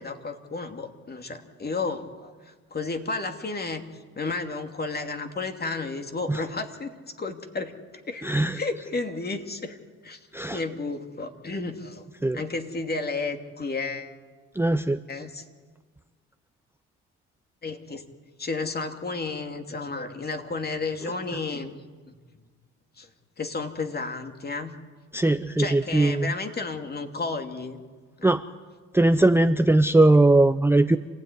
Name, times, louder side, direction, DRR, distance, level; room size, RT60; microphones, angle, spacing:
voice 1, 0.0-6.9 7.2-7.8 8.1-8.2 8.5-9.8 10.0-10.2 10.5-12.1 12.3-14.1 15.1-15.4 17.6-18.0 18.4-21.7 22.0-22.1 23.0-23.1 23.4-24.8 25.6-27.8 28.2-28.3, left 3 dB, 30° left, 6 dB, 2.6 m, -32 dB
voice 2, 8.2-8.6 10.3-10.6 12.2-12.4 14.6-15.0 25.1-26.3 28.2-28.4 28.9-31.0, right 2 dB, 10° right, 10 dB, 0.7 m, -20 dB
27.5 x 16.0 x 10.0 m, 1.4 s
cardioid pair, 80°, 30 cm